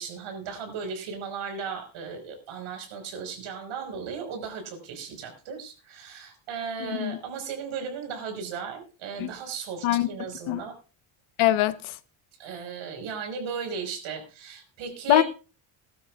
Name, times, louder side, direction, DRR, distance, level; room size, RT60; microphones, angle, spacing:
voice 1, 0.0-10.7 12.4-15.2, right 6 dB, 75° right, 5.0 m, -36 dB
voice 2, 6.8-7.2 9.2-9.3 9.8-10.1 10.5-10.6 11.4-12.0 15.1-15.2, left 15 dB, 90° left, 1.1 m, -23 dB
21.0 x 12.5 x 2.4 m
cardioid pair, 165°, 48 cm